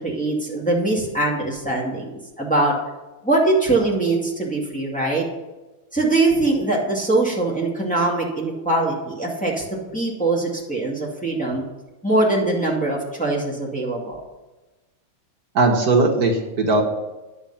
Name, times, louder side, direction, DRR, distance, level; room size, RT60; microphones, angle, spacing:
voice 1, 0.0-2.1 2.4-2.8 3.2-5.2 5.9-11.6 12.0-14.2, right 2 dB, 5° left, -3 dB, 2.0 m, -22 dB
voice 2, 15.6-16.8, right 3 dB, 50° right, 2 dB, 1.6 m, -18 dB
10.5 x 7.3 x 5.7 m, 1.1 s
omnidirectional pair, 2.3 m